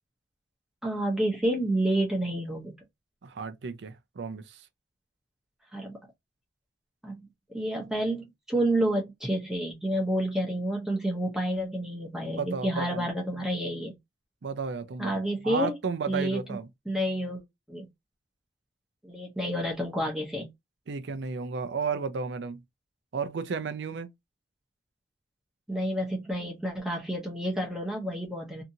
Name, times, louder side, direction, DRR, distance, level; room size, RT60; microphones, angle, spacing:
voice 1, 0.8-2.8 5.7-6.0 7.0-7.2 7.5-14.0 15.0-15.7 16.1-16.6 16.9-17.4 17.7-17.9 19.0-20.5 25.7-28.6, right 1 dB, 5° right, 0.7 m, -29 dB
voice 2, 3.2-4.6 12.2-13.1 14.4-16.7 20.9-22.6 23.1-24.1, right 5 dB, 70° right, 0.4 m, -33 dB
2.8 x 2.4 x 2.6 m
head